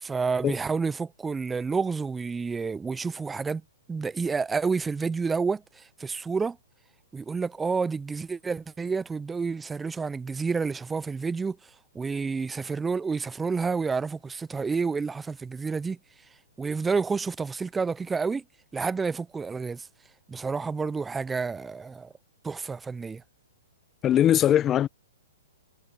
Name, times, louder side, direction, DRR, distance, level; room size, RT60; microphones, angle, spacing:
voice 1, 0.0-3.6 3.9-6.6 7.1-11.6 11.9-16.0 16.6-18.4 18.7-19.9 20.3-22.1 22.4-23.2, right 4 dB, 10° right, 0.6 m, -29 dB
voice 2, 24.0-24.9, left 11 dB, 25° left, 0.9 m, -20 dB
hypercardioid pair, 120°, 0 cm